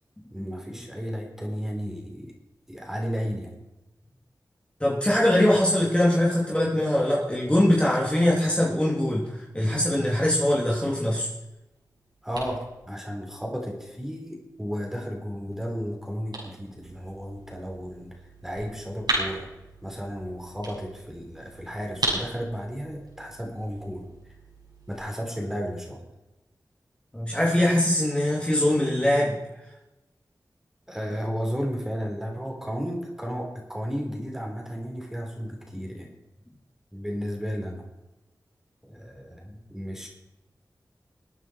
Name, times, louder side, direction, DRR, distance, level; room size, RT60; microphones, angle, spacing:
voice 1, 0.3-2.3 2.7-3.5 12.2-18.1 18.4-19.5 19.8-24.1 24.9-26.0 30.9-36.1 36.9-37.9 38.8-40.1, equal, 5° right, 0 dB, 4.6 m, -33 dB
voice 2, 4.8-11.3 27.1-29.3, left 1 dB, 15° left, -5 dB, 3.4 m, -22 dB
sound 1, 11.5-25.0, right 1 dB, 75° right, 6.1 m, -38 dB
22.5 x 9.2 x 4.8 m, 0.96 s
wide cardioid pair, 55°, 7 cm